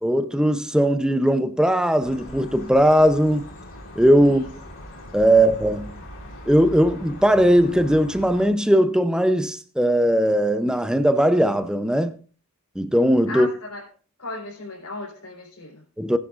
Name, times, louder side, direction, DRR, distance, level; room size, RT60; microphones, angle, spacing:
voice 1, 0.0-3.5 4.0-4.4 5.1-5.9 6.5-12.1 12.8-13.5 16.0-16.2, equal, 5° right, 0.6 m, -19 dB
sound 1, 2.0-8.5, equal, 60° left, 3.2 m, -40 dB
voice 2, 13.3-13.9 14.2-15.8, left 2 dB, 90° left, 4.1 m, -36 dB
19.0 x 10.5 x 2.5 m
head